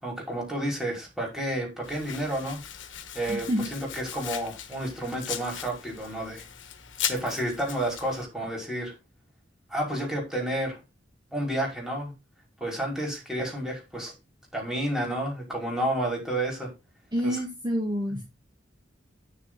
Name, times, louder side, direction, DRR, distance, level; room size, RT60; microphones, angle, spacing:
voice 1, 0.0-2.6 3.1-6.5 7.1-8.9 9.7-10.8 11.3-12.1 12.6-14.1 14.5-16.7 17.2-17.4, right 1 dB, 5° right, -2 dB, 5.2 m, -30 dB
Domestic sounds home sounds, 1.8-8.2, left 9 dB, 75° left, 1.4 m, -38 dB
voice 2, 3.3-3.7 17.1-18.2, equal, 25° right, -1 dB, 2.2 m, -28 dB
10.0 x 7.0 x 3.9 m, 0.25 s
head